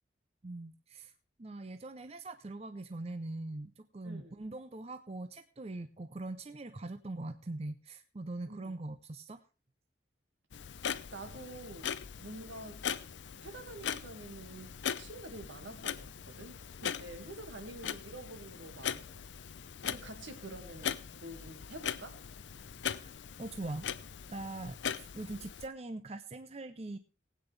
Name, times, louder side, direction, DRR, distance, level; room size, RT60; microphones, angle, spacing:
voice 1, 0.4-1.1 1.4-9.4 23.0-23.1 23.4-23.9 24.3-27.0, right 2 dB, 30° right, 9 dB, 0.6 m, -42 dB
voice 2, 4.0-4.3 8.5-8.8 11.1-12.9 13.3-19.2 19.8-22.3 25.3-25.4, right 1 dB, 80° right, 6 dB, 2.0 m, -48 dB
Clock, 10.5-25.7, left 8 dB, 70° left, 0.5 m, -40 dB
19.5 x 8.9 x 3.3 m, 0.34 s
head